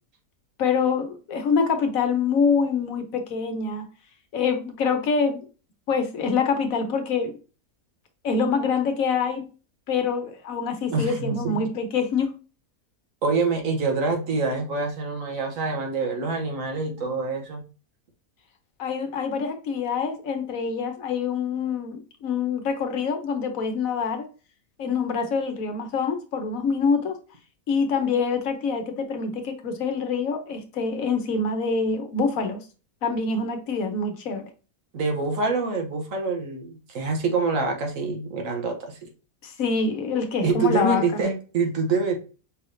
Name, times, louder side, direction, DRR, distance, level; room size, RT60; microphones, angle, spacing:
voice 1, 0.6-3.9 4.3-5.5 5.9-7.4 8.2-9.5 9.9-12.4 18.8-24.3 24.8-27.2 27.7-32.6 33.0-34.5 39.4-41.3, left 5 dB, 70° left, 6 dB, 1.2 m, -25 dB
voice 2, 10.9-11.7 13.2-17.6 34.9-39.1 40.4-42.2, right 4 dB, 65° right, 3 dB, 1.3 m, -26 dB
5.5 x 3.3 x 2.6 m, 0.34 s
omnidirectional pair, 1.5 m